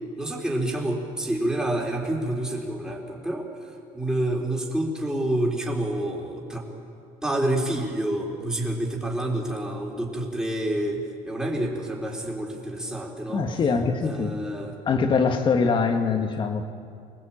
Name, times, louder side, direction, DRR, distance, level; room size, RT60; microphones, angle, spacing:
voice 1, 0.1-3.5 3.9-6.7 7.2-13.5 14.0-14.8, right 1 dB, 5° right, -2 dB, 3.8 m, -28 dB
voice 2, 13.3-14.4 14.9-16.6, left 5 dB, 35° left, 5 dB, 2.2 m, -23 dB
25.0 x 20.0 x 8.8 m, 2.4 s
cardioid pair, 135°, 14 cm